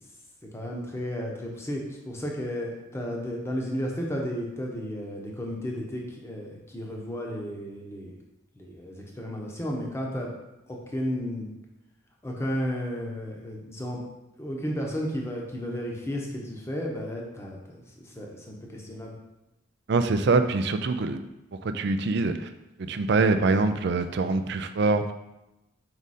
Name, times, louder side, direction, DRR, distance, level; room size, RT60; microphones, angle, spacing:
voice 1, 0.5-8.1 8.6-10.3 10.7-11.5 12.2-14.0 14.4-17.6 17.8-19.2, equal, 10° left, -1 dB, 0.9 m, -33 dB
voice 2, 19.9-21.2 21.5-22.5 22.8-25.1, right 3 dB, 55° right, 9 dB, 0.4 m, -24 dB
5.1 x 4.8 x 4.2 m, 0.94 s
head